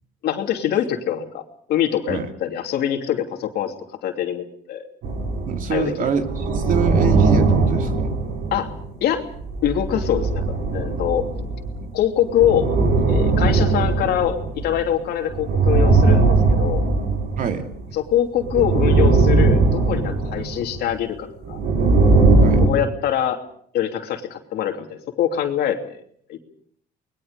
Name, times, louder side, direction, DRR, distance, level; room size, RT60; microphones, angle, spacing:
voice 1, 0.2-1.4 1.7-3.7 4.0-4.8 5.7-6.1 8.5-8.7 9.0-9.2 9.6-10.4 10.7-11.2 11.9-12.7 13.1-16.8 17.9-21.6 22.6-23.4 23.7-26.0 26.3-26.4, left 10 dB, 70° left, 4 dB, 3.0 m, -23 dB
sound 1, 5.0-5.8 6.1-8.9 9.3-11.9 12.3-14.9 15.3-17.8 18.4-20.9 21.4-22.7, right 3 dB, 70° right, 7.4 m, -19 dB
voice 2, 5.5-8.1 11.8-11.9 17.4-17.7 22.4-22.7, right 6 dB, 50° right, 5 dB, 2.8 m, -25 dB
30.0 x 21.5 x 5.2 m, 0.63 s
cardioid pair, 110°, 17 cm